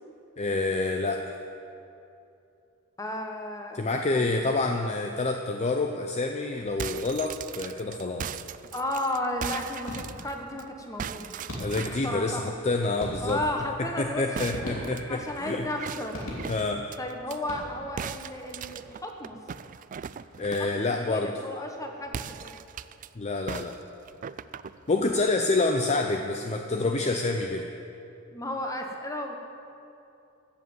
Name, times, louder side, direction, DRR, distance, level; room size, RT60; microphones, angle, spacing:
voice 1, 0.4-1.4 3.7-8.3 11.6-13.4 13.8-15.7 16.5-16.9 20.4-21.3 23.2-23.8 24.9-27.7, left 3 dB, 35° left, 4 dB, 0.6 m, -27 dB
voice 2, 3.0-3.8 4.1-4.5 8.7-11.3 11.7-12.5 13.2-14.7 15.1-16.2 17.0-19.4 20.6-22.6 28.3-29.3, left 1 dB, 15° left, 3 dB, 1.3 m, -34 dB
sound 1, 6.6-10.6 11.0-12.2 14.3-17.4 18.0-20.8 22.1-23.1 23.5-25.3, right 7 dB, 40° right, 0.3 m, -39 dB
sound 2, 9.9-10.4 11.5-12.0 13.0-13.9 14.5-15.3 16.1-16.8 17.4-18.0, left 1 dB, 75° left, 3.0 m, -38 dB
14.5 x 7.7 x 8.0 m, 2.7 s
head